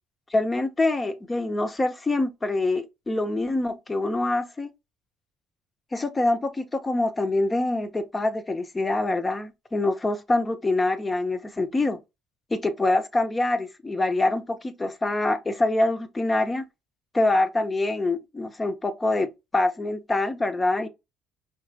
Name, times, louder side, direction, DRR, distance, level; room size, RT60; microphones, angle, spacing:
voice 1, 0.3-4.7 5.9-12.0 12.5-16.6 17.1-20.9, left 2 dB, 25° left, 0.8 m, -25 dB
5.0 x 2.9 x 2.7 m
hypercardioid pair, 65°, 0 cm